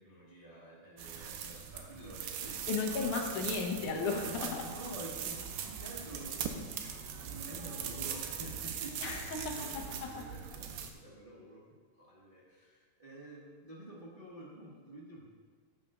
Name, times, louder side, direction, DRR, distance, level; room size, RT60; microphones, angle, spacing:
voice 1, 0.0-3.3 4.2-7.0 7.2-9.0 9.5-11.6 11.9-15.3, right 1 dB, 25° right, -7 dB, 1.2 m, -49 dB
sound 1, 1.0-10.9, right 8 dB, 80° right, 2.2 m, -41 dB
voice 2, 2.7-4.6 9.0-10.2, left 4 dB, 80° left, 2 dB, 2.4 m, -35 dB
sound 2, 2.8-8.7, equal, 10° right, 2.0 m, -56 dB
13.5 x 8.9 x 2.5 m, 1.6 s
omnidirectional pair, 3.6 m